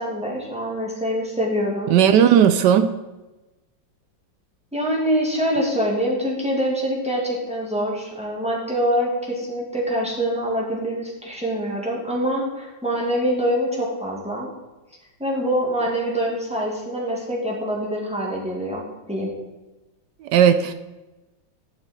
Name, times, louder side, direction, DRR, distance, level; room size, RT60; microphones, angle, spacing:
voice 1, 0.0-1.9 4.7-14.5 15.2-19.3, equal, 5° right, 2.1 m, -25 dB
voice 2, 1.9-2.9 20.2-20.7, right 9 dB, 75° right, 1.1 m, -15 dB
11.0 x 6.5 x 4.4 m
omnidirectional pair, 2.0 m